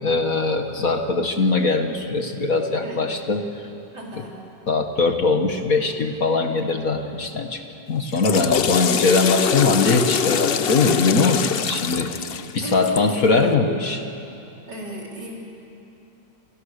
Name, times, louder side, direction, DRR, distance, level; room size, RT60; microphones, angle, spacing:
voice 1, 0.0-3.4 4.7-12.1 12.5-14.0, left 3 dB, 50° left, 5 dB, 1.8 m, -21 dB
voice 2, 3.9-4.4 11.7-12.0 12.6-13.1 14.7-15.4, right 1 dB, 65° right, -2 dB, 5.1 m, -35 dB
Water / Toilet flush, 8.0-13.2, left 8 dB, 85° left, 0.5 m, -24 dB
29.0 x 28.5 x 6.7 m, 2.8 s
omnidirectional pair, 2.0 m